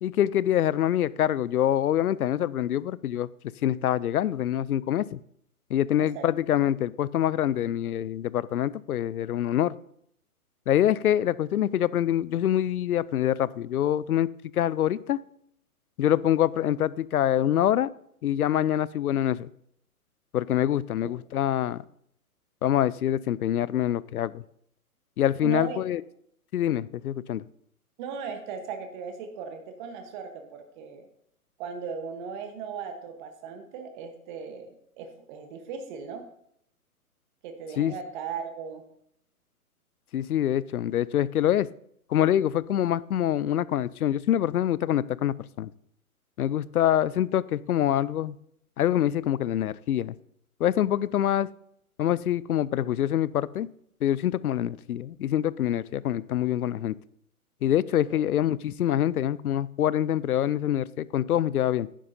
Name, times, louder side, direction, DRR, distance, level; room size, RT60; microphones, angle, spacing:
voice 1, 0.0-3.3 3.6-5.2 5.7-9.7 10.7-15.2 16.0-17.9 18.2-19.5 20.3-21.8 22.6-24.4 25.2-26.0 26.5-27.4 37.8-37.9 40.1-41.7 42.1-45.7 46.4-48.4 48.8-50.1 50.6-51.5 52.0-53.7 54.0-57.0 57.6-61.9, left 11 dB, 75° left, 20 dB, 0.5 m, -25 dB
voice 2, 25.4-25.8 28.0-31.1 31.6-36.2 37.4-38.8 46.8-47.0 58.1-58.2, right 6 dB, 30° right, 6 dB, 1.1 m, -37 dB
11.5 x 10.0 x 2.7 m, 0.70 s
hypercardioid pair, 130°, 44 cm